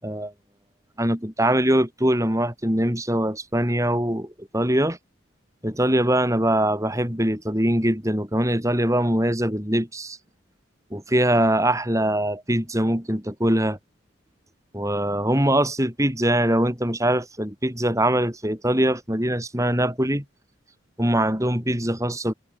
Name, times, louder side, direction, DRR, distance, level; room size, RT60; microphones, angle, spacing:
voice 1, 0.0-0.3 1.0-5.0 5.6-10.2 10.9-13.8 14.7-20.2 21.0-22.3, right 1 dB, 15° right, 7.6 m, -22 dB
head